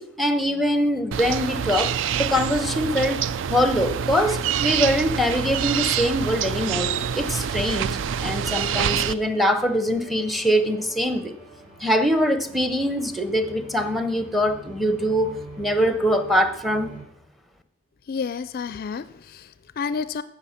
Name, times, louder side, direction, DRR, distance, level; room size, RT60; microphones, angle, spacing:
voice 1, 0.0-3.2 3.5-11.3 11.8-16.9, equal, ahead, 10 dB, 0.7 m, -23 dB
sound 1, 1.1-9.1, right 8 dB, 65° right, 0.4 m, -26 dB
sound 2, 2.0-17.0, right 1 dB, 30° right, 5.0 m, -46 dB
voice 2, 18.1-20.2, left 5 dB, 50° left, 15 dB, 0.4 m, -30 dB
14.5 x 5.7 x 5.7 m, 0.76 s
head